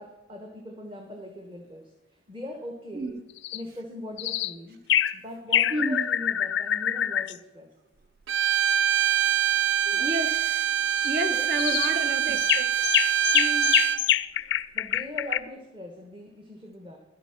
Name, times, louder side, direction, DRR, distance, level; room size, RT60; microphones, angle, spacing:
voice 1, 0.0-1.8 2.3-3.2 3.5-4.8 5.1-7.7 9.9-10.2 11.3-11.8 12.1-12.4 14.7-17.0, left 1 dB, 25° right, 2 dB, 1.2 m, -41 dB
sound 1, 3.4-3.6 4.2-4.5 4.9-5.2 5.5-7.3 10.9-11.1 11.6-11.9 12.4-15.4, left 11 dB, 65° left, 0.4 m, -25 dB
voice 2, 5.7-6.0 9.9-10.7 11.0-12.9 13.3-13.8, right 1 dB, 50° right, 8 dB, 1.1 m, -31 dB
Bowed string instrument, 8.3-14.0, right 10 dB, 80° right, 0.5 m, -24 dB
11.0 x 8.2 x 5.9 m, 0.89 s
head